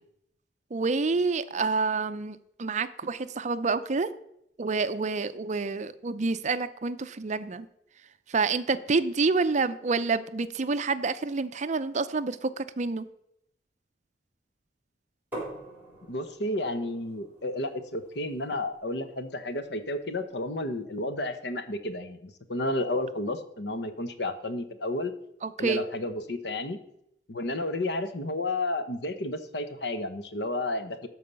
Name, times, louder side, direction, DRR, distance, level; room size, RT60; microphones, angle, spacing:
voice 1, 0.7-4.1 4.6-7.7 8.3-13.1 25.4-25.8, right 4 dB, 40° right, 13 dB, 0.5 m, -28 dB
sound 1, 15.3-21.0, right 1 dB, 10° right, 4.4 m, -46 dB
voice 2, 16.1-25.1 25.6-26.8 27.3-31.1, left 2 dB, 70° left, 10 dB, 1.0 m, -32 dB
12.5 x 4.7 x 6.8 m, 0.77 s
head